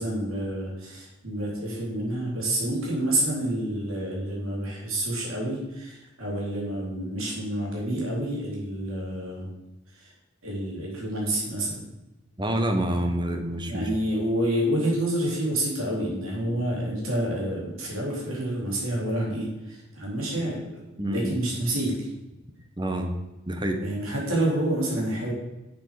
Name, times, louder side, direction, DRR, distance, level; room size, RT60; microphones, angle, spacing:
voice 1, 0.0-9.5 9.9-10.1 10.4-11.7 13.7-20.7 21.1-22.1 23.8-25.3, right 1 dB, 75° right, -3 dB, 3.9 m, -28 dB
voice 2, 12.4-13.9 21.0-21.3 22.8-23.1 23.5-23.8, right 1 dB, 20° right, 4 dB, 1.2 m, -27 dB
8.2 x 7.3 x 6.8 m, 0.99 s
head